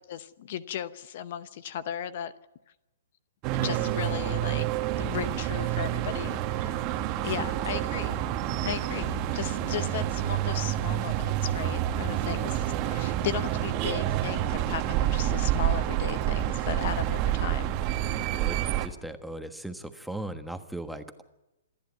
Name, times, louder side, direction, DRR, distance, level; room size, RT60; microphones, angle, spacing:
voice 1, 0.1-2.3 3.5-4.7 5.0-6.8 7.2-8.3 8.6-18.2, left 10 dB, 55° left, 15 dB, 0.8 m, -36 dB
sound 1, 3.4-18.9, right 12 dB, 35° right, 1.4 m, -28 dB
voice 2, 7.2-7.5 18.4-21.2, right 1 dB, ahead, 7 dB, 1.3 m, -39 dB
27.5 x 10.5 x 9.3 m, 0.98 s
hypercardioid pair, 125°, 0 cm